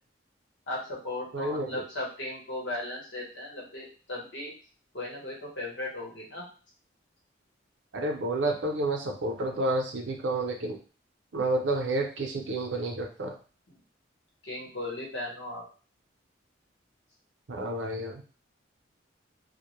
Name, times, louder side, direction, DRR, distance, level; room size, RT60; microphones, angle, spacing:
voice 1, 0.7-4.5 4.9-6.4 14.4-15.6, left 2 dB, 70° left, -2 dB, 0.9 m, -36 dB
voice 2, 1.3-1.8 7.9-10.8 11.3-13.4 17.5-18.2, right 2 dB, 70° right, 2 dB, 0.5 m, -30 dB
2.1 x 2.0 x 3.0 m, 0.37 s
head